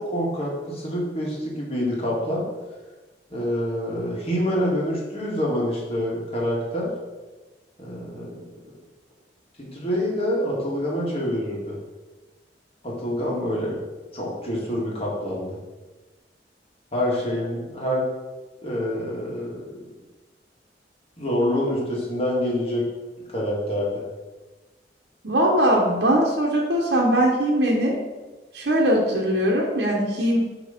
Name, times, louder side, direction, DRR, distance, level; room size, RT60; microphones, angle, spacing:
voice 1, 0.0-2.4 3.3-6.9 7.8-8.4 9.6-11.8 12.8-13.8 14.1-15.6 16.9-18.0 18.6-19.6 21.2-22.9 23.3-24.0, equal, 35° left, -4 dB, 1.9 m, -26 dB
voice 2, 25.2-27.9 28.5-30.4, right 1 dB, 70° right, -2 dB, 1.0 m, -20 dB
7.8 x 3.1 x 5.2 m, 1.2 s
head